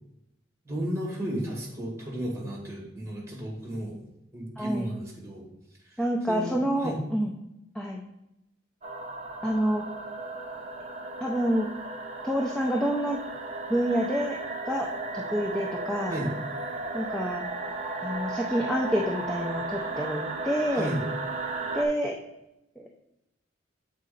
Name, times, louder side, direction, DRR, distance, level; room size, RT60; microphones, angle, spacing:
voice 1, 0.7-4.0 4.3-5.5 5.8-6.0 6.3-7.0 16.1-16.3 20.7-21.0, equal, 15° right, -2 dB, 1.8 m, -33 dB
voice 2, 4.6-4.9 6.0-7.3 7.7-8.0 9.4-9.8 11.2-11.7 12.2-13.2 13.7-14.4 14.6-14.9 15.1-16.2 16.9-17.4 18.0-20.9 21.7-22.2 22.8-22.9, equal, 5° left, -1 dB, 0.5 m, -28 dB
sound 1, 8.8-21.9, right 2 dB, 35° right, 0.7 m, -35 dB
7.6 x 4.1 x 3.8 m, 0.87 s
head